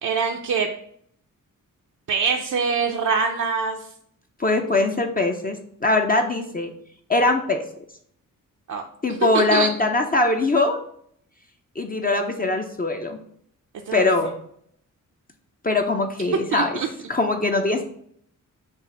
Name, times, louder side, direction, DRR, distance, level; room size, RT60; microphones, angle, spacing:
voice 1, 0.0-0.7 2.1-3.8 8.7-8.8 9.3-9.7 13.9-14.0 16.5-16.9, right 5 dB, 60° right, 2 dB, 0.6 m, -23 dB
voice 2, 4.4-6.7 7.1-7.6 9.0-10.8 11.8-13.2 13.9-14.3 15.6-16.8 17.1-17.8, left 2 dB, 25° left, 3 dB, 0.6 m, -22 dB
7.0 x 2.5 x 5.5 m, 0.66 s
wide cardioid pair, 140°, 33 cm